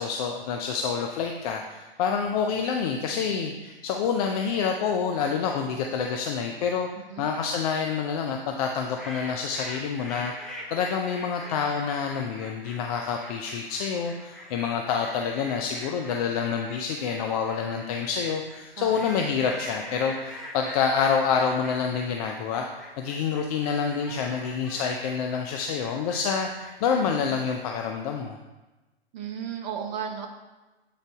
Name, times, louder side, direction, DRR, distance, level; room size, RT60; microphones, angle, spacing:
voice 1, 0.0-6.9 7.2-22.7 23.0-28.4, left 6 dB, 40° left, 3 dB, 0.5 m, -27 dB
voice 2, 7.0-7.3 18.8-19.1 26.9-27.2 29.1-30.3, right 8 dB, 45° right, 3 dB, 0.8 m, -35 dB
sound 1, 8.6-27.7, left 1 dB, ahead, 1.0 m, -43 dB
7.6 x 3.9 x 3.5 m, 1.1 s
hypercardioid pair, 115°, 31 cm